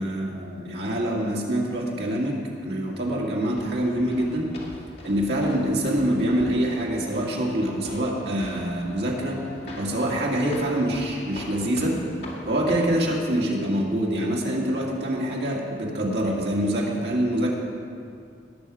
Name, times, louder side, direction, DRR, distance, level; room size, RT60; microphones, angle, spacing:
voice 1, 0.0-2.4 2.6-4.5 5.0-9.4 9.8-12.0 12.5-17.5, right 1 dB, 70° right, -3 dB, 2.1 m, -25 dB
sound 1, 3.3-13.1, left 1 dB, 65° left, 2.2 m, -42 dB
18.0 x 6.5 x 4.9 m, 2.4 s
head